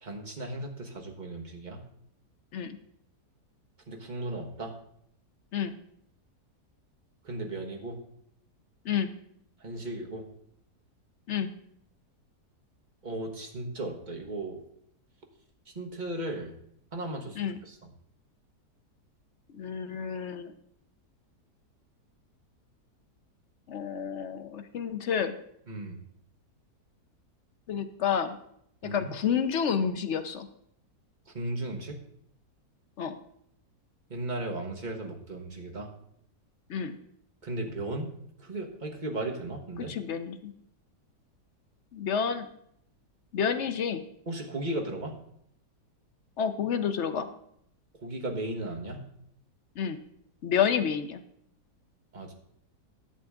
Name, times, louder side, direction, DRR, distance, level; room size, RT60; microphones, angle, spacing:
voice 1, 0.0-1.8 3.9-4.7 7.2-8.0 9.6-10.3 13.0-14.6 15.7-16.5 16.9-17.8 25.7-26.0 28.8-29.1 31.3-32.0 34.1-35.9 37.4-38.1 38.4-40.0 44.3-45.2 48.0-49.1 52.1-52.3, right 1 dB, 30° right, 2 dB, 1.2 m, -36 dB
voice 2, 19.5-20.5 23.7-25.3 27.7-28.4 28.8-30.5 33.0-33.2 36.7-37.0 39.9-40.5 41.9-42.5 43.3-44.0 46.4-47.3 49.8-50.0 50.4-51.2, left 7 dB, 60° left, 9 dB, 0.8 m, -29 dB
11.5 x 7.9 x 3.6 m, 0.71 s
omnidirectional pair, 1.8 m